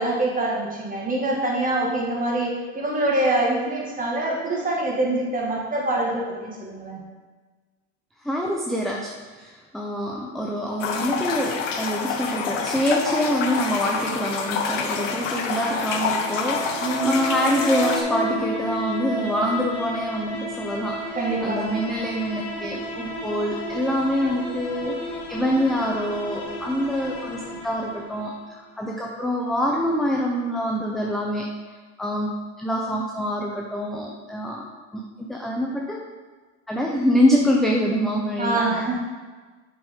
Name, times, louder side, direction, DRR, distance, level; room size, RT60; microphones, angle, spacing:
voice 1, 0.0-7.0 16.8-17.2 21.2-21.7 38.4-39.0, right 2 dB, 20° right, -2 dB, 1.9 m, -25 dB
voice 2, 8.2-25.0 25.3-31.5 32.0-34.6 34.9-36.0 36.7-38.6, equal, ahead, -1 dB, 0.6 m, -25 dB
sound 1, 10.8-18.0, left 5 dB, 80° left, 1.0 m, -27 dB
sound 2, 15.6-28.5, equal, 40° left, 2.2 m, -32 dB
6.9 x 5.3 x 3.7 m, 1.4 s
hypercardioid pair, 95°, 37 cm